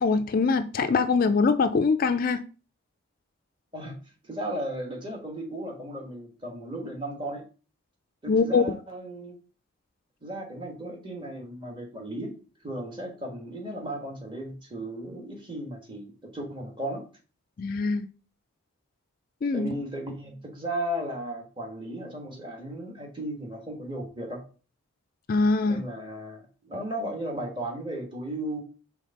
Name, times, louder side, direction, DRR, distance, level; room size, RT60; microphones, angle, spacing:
voice 1, 0.0-2.4 8.3-8.8 17.6-18.1 19.4-19.7 25.3-25.8, left 4 dB, 40° left, 0.3 m, -23 dB
voice 2, 4.2-7.4 8.2-9.4 10.2-12.3 12.6-17.0 19.5-24.4 25.7-28.6, right 1 dB, 20° right, 1.3 m, -35 dB
5.0 x 3.5 x 5.3 m
head